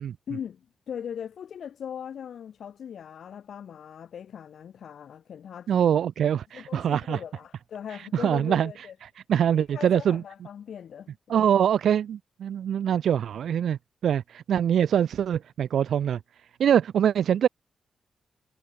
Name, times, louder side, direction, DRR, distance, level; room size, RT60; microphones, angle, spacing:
voice 1, 0.3-5.9 6.5-8.9 9.5-11.5, left 8 dB, 65° left, 5.4 m, -39 dB
voice 2, 5.7-7.2 8.1-8.7 9.3-10.2 11.3-16.2 16.6-17.5, right 9 dB, 80° right, 2.3 m, -24 dB
wide cardioid pair, 170°, 0 cm